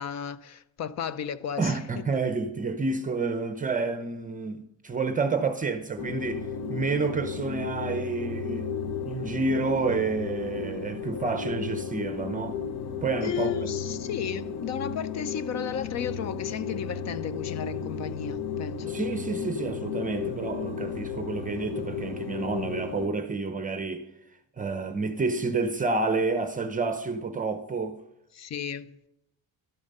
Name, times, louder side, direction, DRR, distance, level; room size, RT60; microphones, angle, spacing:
voice 1, 0.0-2.1 13.2-19.0 28.3-29.1, left 8 dB, 50° left, 0.6 m, -34 dB
voice 2, 1.6-8.7 9.0-12.6 13.0-13.7 18.8-24.0 24.6-28.0, right 4 dB, 20° right, 0.7 m, -29 dB
sound 1, 6.0-23.1, left 6 dB, 80° left, 1.0 m, -34 dB
12.0 x 8.8 x 5.4 m
cardioid pair, 155°, 36 cm